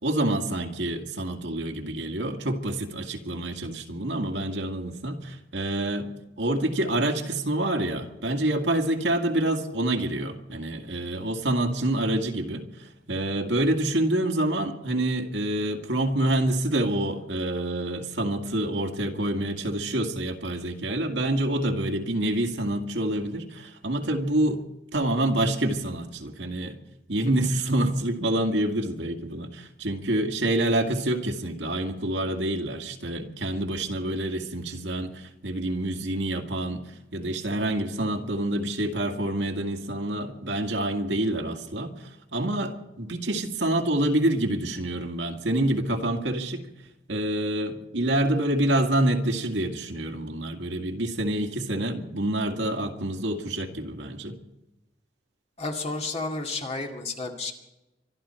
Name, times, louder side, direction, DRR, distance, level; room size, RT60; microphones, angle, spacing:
voice 1, 0.0-6.1 6.4-24.6 24.9-26.8 27.1-46.6 47.1-54.4, right 1 dB, 75° right, 4 dB, 2.0 m, -27 dB
voice 2, 55.6-57.5, left 3 dB, 35° left, 2 dB, 2.3 m, -31 dB
25.5 x 11.5 x 4.4 m, 0.94 s
head